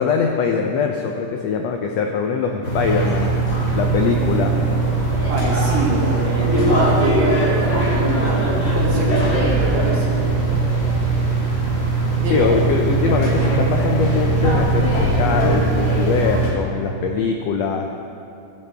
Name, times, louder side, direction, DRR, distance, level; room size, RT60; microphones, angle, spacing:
voice 1, 0.0-3.3 3.7-4.6 12.3-17.9, left 5 dB, 80° left, 3 dB, 1.5 m, -22 dB
sound 1, 2.6-16.5, right 2 dB, 35° left, 2.7 m, -20 dB
voice 2, 5.3-10.4 12.2-12.6, right 2 dB, 60° right, -4 dB, 2.9 m, -25 dB
17.0 x 11.0 x 3.4 m, 2.6 s
omnidirectional pair, 3.6 m